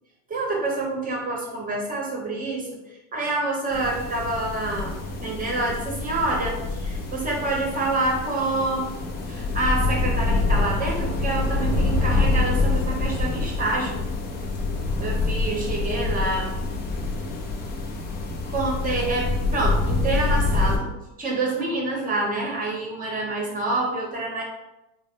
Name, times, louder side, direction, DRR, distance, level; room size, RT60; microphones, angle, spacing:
voice 1, 0.3-2.7 3.1-8.9 9.3-14.0 15.0-16.5 18.5-20.9 21.2-24.4, right 2 dB, 20° right, 0 dB, 0.8 m, -27 dB
sound 1, 3.7-20.8, left 3 dB, 25° left, 0.4 m, -26 dB
3.7 x 2.0 x 3.5 m, 0.93 s
supercardioid pair, 125°, 47 cm